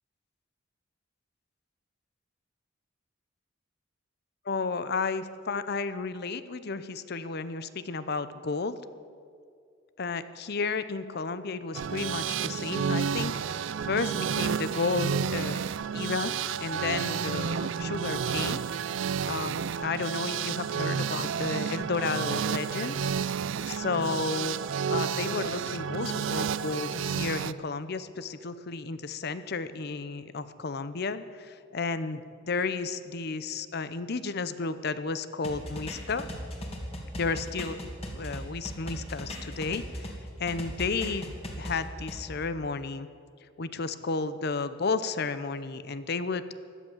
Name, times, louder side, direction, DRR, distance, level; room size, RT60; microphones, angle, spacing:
voice 1, 4.5-8.8 10.0-13.6 13.9-15.6 15.9-18.6 19.3-23.0 23.7-24.6 24.9-36.3 37.2-37.8 38.1-40.1 40.4-43.1 43.6-46.6, left 4 dB, 55° left, 13 dB, 0.7 m, -32 dB
sound 1, 11.7-27.5, right 7 dB, 70° right, 0.4 m, -31 dB
sound 2, 35.4-40.2 40.5-42.2, equal, 30° left, 2.4 m, -38 dB
16.5 x 11.5 x 7.3 m, 2.3 s
head